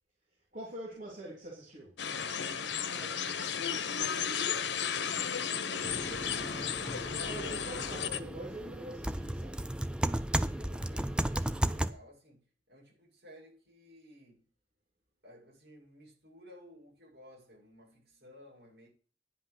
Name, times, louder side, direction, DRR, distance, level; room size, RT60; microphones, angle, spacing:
voice 1, 0.3-2.0 7.1-9.6, right 1 dB, 45° right, 2.9 m, -45 dB
sound 1, 2.0-8.2, left 7 dB, 90° left, 1.0 m, -34 dB
voice 2, 2.8-5.9 10.6-14.5 15.2-18.9, equal, 70° right, 7.5 m, -56 dB
sound 2, 5.8-11.9, right 1 dB, 5° right, 0.5 m, -34 dB
11.0 x 5.8 x 8.1 m
head